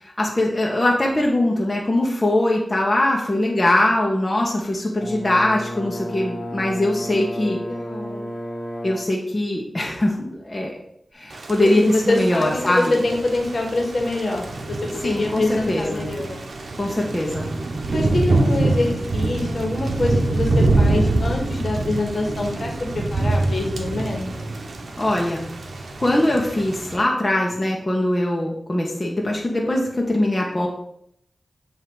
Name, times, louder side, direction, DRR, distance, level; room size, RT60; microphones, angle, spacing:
voice 1, 0.0-7.6 8.8-10.7 11.1-13.0 15.0-16.1 16.8-17.5 25.0-25.4 26.0-30.7, left 1 dB, 35° left, -2 dB, 1.0 m, -21 dB
Brass instrument, 5.0-9.2, equal, 50° left, 1.3 m, -32 dB
voice 2, 7.3-8.3 11.6-16.5 17.9-24.5, left 2 dB, 70° left, 1 dB, 1.4 m, -25 dB
Thunder / Rain, 11.3-27.0, right 2 dB, 80° right, 0.7 m, -25 dB
7.6 x 2.8 x 4.7 m, 0.72 s
cardioid pair, 50°, 0 cm